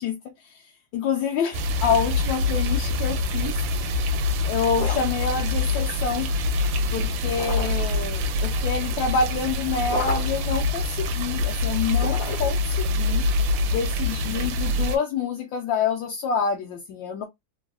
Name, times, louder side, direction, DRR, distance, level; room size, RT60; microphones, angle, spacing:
voice 1, 0.0-3.6 3.9-4.0 4.5-6.3 6.9-13.2 13.7-17.2, left 5 dB, 80° left, 1.3 m, -27 dB
sound 1, 1.5-15.0, left 2 dB, 80° right, 1.3 m, -25 dB
sound 2, 4.7-5.3 7.3-7.9 9.8-10.5 11.9-12.7, left 4 dB, 60° left, 0.9 m, -34 dB
3.4 x 2.3 x 2.2 m
omnidirectional pair, 2.1 m